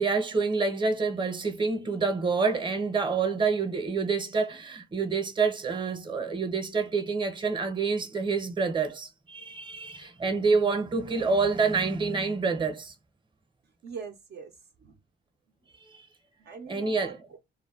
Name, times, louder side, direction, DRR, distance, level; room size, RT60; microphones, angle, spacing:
voice 1, 0.0-12.9 15.9-16.1 16.7-17.1, right 4 dB, 25° right, 0.8 m, -27 dB
voice 2, 13.8-14.9 16.4-17.4, right 5 dB, 55° right, 0.6 m, -43 dB
2.2 x 2.2 x 3.5 m
cardioid pair, 90°, 20 cm